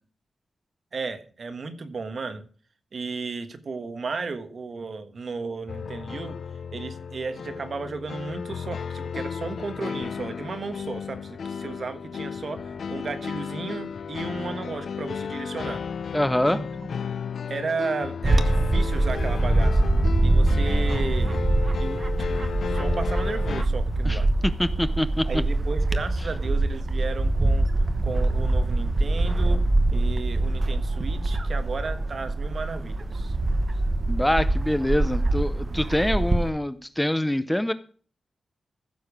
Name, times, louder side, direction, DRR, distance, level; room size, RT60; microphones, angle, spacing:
voice 1, 0.9-2.5 2.9-6.4 6.7-15.8 16.5-16.9 17.5-19.8 20.2-21.4 21.8-24.3 25.2-27.7 28.0-33.3, right 4 dB, 50° right, 9 dB, 1.4 m, -34 dB
sound 1, 5.7-23.6, left 6 dB, 65° left, 0.5 m, -33 dB
voice 2, 16.1-16.6 24.0-25.2 34.1-37.7, left 1 dB, 5° left, 13 dB, 0.6 m, -25 dB
Bird / Wind, 18.2-36.5, right 2 dB, 30° right, 1.0 m, -24 dB
15.0 x 7.0 x 4.9 m, 0.42 s
wide cardioid pair, 125°, 0 cm